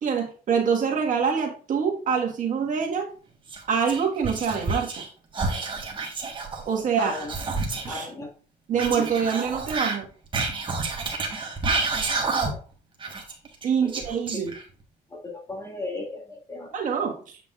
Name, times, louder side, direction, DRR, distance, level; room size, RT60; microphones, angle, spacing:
voice 1, 0.0-3.1 3.7-5.0 6.6-7.2 7.9-8.1 8.7-10.1 13.6-14.5 16.7-17.4, right 6 dB, 50° right, 1 dB, 1.7 m, -25 dB
Whispering, 3.5-5.1 5.3-8.0 8.7-12.7 13.0-14.8, right 3 dB, 30° right, 1.4 m, -29 dB
voice 2, 7.0-7.3 7.9-8.3 12.4-12.6 13.8-13.9 14.3-14.4 15.1-17.1, left 2 dB, 20° left, -1 dB, 1.9 m, -36 dB
7.3 x 5.8 x 2.5 m, 0.39 s
cardioid pair, 110°, 17 cm